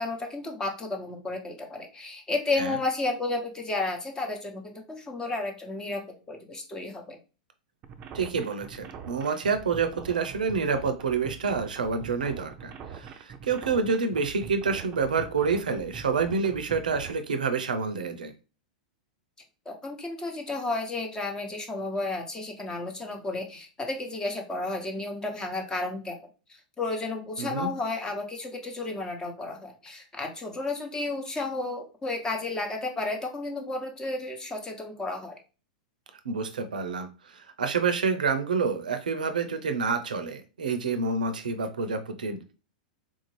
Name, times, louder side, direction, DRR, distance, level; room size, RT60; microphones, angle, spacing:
voice 1, 0.0-7.2 19.7-26.2 26.5-35.4, left 2 dB, 15° left, 3 dB, 0.9 m, -32 dB
sound 1, 7.8-17.1, right 6 dB, 35° right, 0.5 m, -43 dB
voice 2, 8.1-18.3 27.4-27.7 36.2-37.1 37.3-42.5, right 5 dB, 80° right, 9 dB, 0.6 m, -28 dB
3.7 x 2.6 x 3.2 m, 0.34 s
hypercardioid pair, 105°, 4 cm